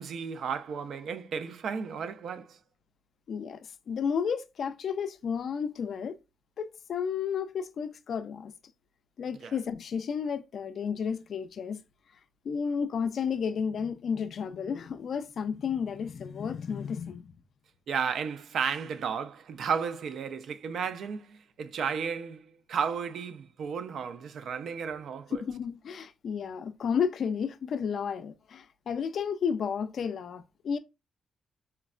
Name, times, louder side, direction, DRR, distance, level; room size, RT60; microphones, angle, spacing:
voice 1, 0.0-2.6 9.4-9.5 17.9-25.4, right 6 dB, 70° right, 0.3 m, -33 dB
voice 2, 3.3-3.6 3.9-6.2 6.6-8.5 9.2-11.8 12.4-17.3 25.4-30.8, left 6 dB, 60° left, 0.3 m, -32 dB
4.3 x 2.0 x 2.4 m
cardioid pair, 130°, 0 cm